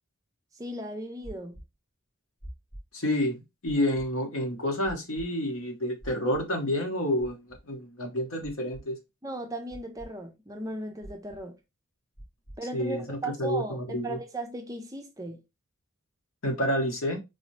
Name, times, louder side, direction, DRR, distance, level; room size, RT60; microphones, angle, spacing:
voice 1, 0.6-1.6 9.2-11.6 12.6-15.4, right 1 dB, 15° right, 0.5 m, -37 dB
sound 1, 1.2-1.6 2.4-2.8 3.7-4.1 4.8-5.2 6.0-6.4 7.2-7.6 8.4-8.8 9.7-10.1 11.0-11.4 12.2-12.6, equal, 55° left, 2.3 m, -44 dB
voice 2, 2.9-9.0 12.7-14.2 16.4-17.2, equal, 80° left, 1.1 m, -29 dB
3.9 x 2.7 x 3.1 m
head